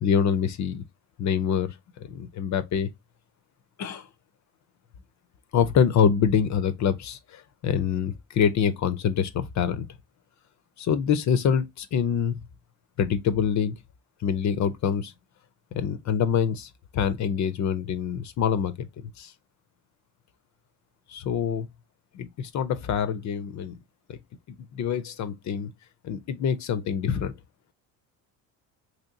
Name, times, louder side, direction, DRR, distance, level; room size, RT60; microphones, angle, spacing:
voice 1, 0.0-0.8 1.2-2.9 3.8-4.1 5.5-9.9 10.8-12.3 13.0-13.8 14.2-15.1 15.7-18.9 19.2-19.3 21.1-21.7 22.1-23.8 24.1-24.2 24.7-25.7 26.0-27.3, left 7 dB, 45° left, 0.5 m, -25 dB
3.0 x 2.9 x 2.5 m
supercardioid pair, 80°, 40 cm